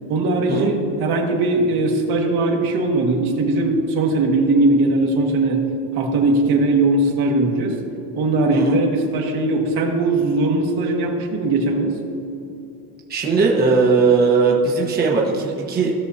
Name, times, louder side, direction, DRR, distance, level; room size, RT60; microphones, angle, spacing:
voice 1, 0.1-5.6 6.0-7.8 8.1-11.9, right 2 dB, 60° right, 0 dB, 1.8 m, -19 dB
voice 2, 13.1-15.9, right 4 dB, 20° right, -3 dB, 1.2 m, -18 dB
17.0 x 6.3 x 2.8 m, 2.9 s
cardioid pair, 140°, 43 cm